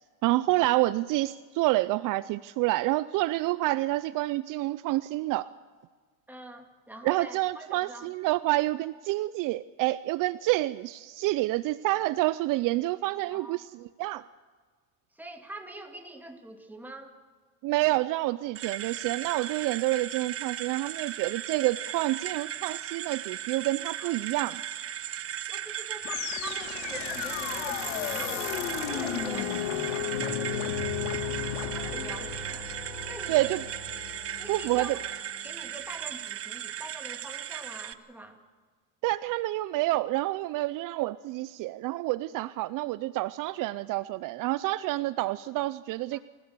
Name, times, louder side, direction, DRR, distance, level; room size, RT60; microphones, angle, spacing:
voice 1, 0.2-5.5 7.0-14.2 17.6-24.6 33.3-33.6 34.5-35.0 39.0-46.2, right 18 dB, 55° right, 16 dB, 0.6 m, -28 dB
voice 2, 6.3-8.1 13.3-13.6 15.1-17.1 24.0-24.2 25.5-32.7 33.1-33.6 34.4-35.0 35.4-38.4 46.1-46.2, right 2 dB, 5° right, 2 dB, 2.7 m, -44 dB
sound 1, 18.5-37.9, right 11 dB, 35° right, 1.0 m, -37 dB
sound 2, 26.0-35.2, left 8 dB, 80° left, 2.0 m, -34 dB
27.0 x 16.5 x 6.8 m, 1.5 s
cardioid pair, 120°, 38 cm